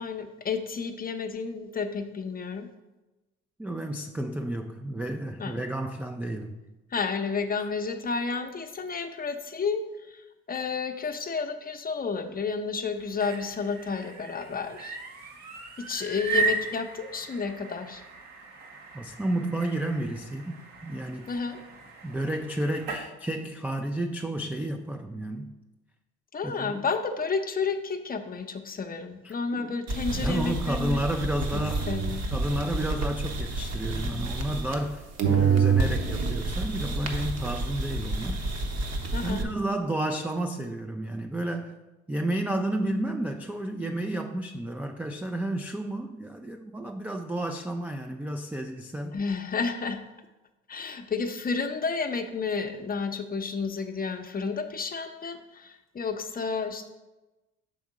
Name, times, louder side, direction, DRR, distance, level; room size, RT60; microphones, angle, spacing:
voice 1, 0.0-2.7 5.4-5.6 6.9-15.0 15.8-18.0 21.3-21.6 26.3-31.0 31.5-31.6 31.9-32.3 39.1-39.5 49.1-50.0 50.7-56.9, left 5 dB, 25° left, 6 dB, 0.7 m, -31 dB
voice 2, 3.6-6.6 7.6-7.7 18.9-21.3 22.0-25.5 26.4-26.8 29.2-29.8 30.1-31.9 32.3-38.4 39.2-41.8 42.1-49.2, right 1 dB, 5° right, 5 dB, 0.3 m, -31 dB
sound 1, 12.9-23.1, right 4 dB, 70° right, 1.1 m, -36 dB
sound 2, 29.9-34.9 35.2-39.4, right 4 dB, 45° right, 1.0 m, -28 dB
6.2 x 3.5 x 4.8 m, 1.1 s
hypercardioid pair, 60°, 36 cm